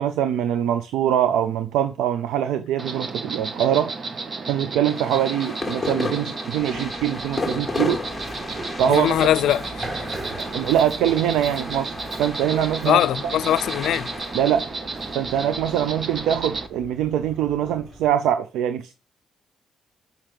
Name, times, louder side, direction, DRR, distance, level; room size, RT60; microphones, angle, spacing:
voice 1, 0.0-3.9 4.5-8.0 8.8-9.1 10.4-11.9 12.2-13.0 14.3-14.7 15.1-18.9, right 10 dB, 90° right, 0.6 m, -23 dB
Insect, 2.8-16.7, right 4 dB, 40° right, 1.0 m, -33 dB
sound 1, 4.9-16.4, left 3 dB, 15° left, 1.3 m, -34 dB
Run, 6.5-18.1, right 1 dB, 25° right, 1.7 m, -40 dB
voice 2, 8.9-9.8 12.9-14.1, left 12 dB, 80° left, 0.3 m, -21 dB
5.9 x 5.8 x 4.9 m
cardioid pair, 90°, 0 cm